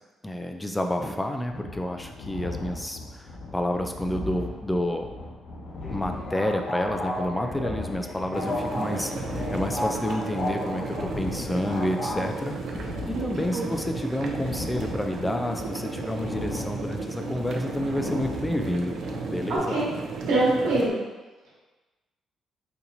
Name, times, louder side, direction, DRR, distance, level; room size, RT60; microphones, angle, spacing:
voice 1, 0.2-5.1 5.9-12.6 13.1-19.0 19.3-19.8, left 1 dB, 10° left, 4 dB, 0.3 m, -29 dB
sound 1, 1.4-19.6, left 3 dB, 75° left, 1.0 m, -39 dB
sound 2, 5.8-12.2, left 1 dB, 40° left, 0.9 m, -34 dB
sound 3, 8.3-20.9, right 3 dB, 70° right, 0.4 m, -34 dB
voice 2, 13.1-13.6 19.5-19.8 20.3-20.9, right 2 dB, 85° right, -6 dB, 1.3 m, -24 dB
4.2 x 2.7 x 2.6 m, 1.2 s
cardioid pair, 90°, 0 cm